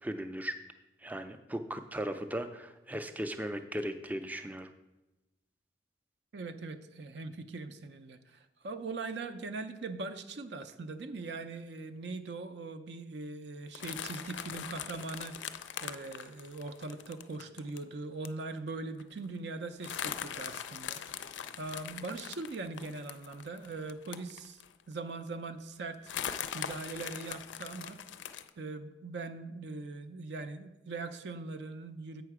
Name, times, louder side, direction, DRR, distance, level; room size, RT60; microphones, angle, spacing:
voice 1, 0.0-0.6 1.0-4.7, right 1 dB, 10° right, 8 dB, 0.4 m, -37 dB
voice 2, 6.3-24.6 24.9-28.0 28.6-32.2, right 3 dB, 65° right, 9 dB, 0.5 m, -41 dB
sound 1, 13.7-17.8 18.2-18.4 18.7-18.8 19.0-19.2 19.8-24.8 25.3-25.4 26.0-28.5, left 9 dB, 75° left, 0.4 m, -41 dB
8.0 x 5.7 x 4.7 m, 1.0 s
head